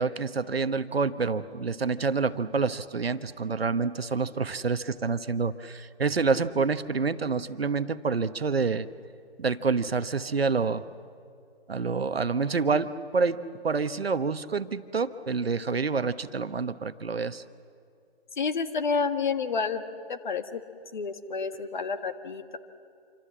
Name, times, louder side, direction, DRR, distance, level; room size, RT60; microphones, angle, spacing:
voice 1, 0.0-8.9 9.4-10.8 11.7-17.4, right 4 dB, 70° right, 13 dB, 1.1 m, -27 dB
voice 2, 18.4-19.8 20.1-20.6 20.9-22.6, left 5 dB, 50° left, 9 dB, 1.6 m, -29 dB
27.0 x 25.5 x 7.5 m, 2.4 s
figure-of-eight pair, 145°, 31 cm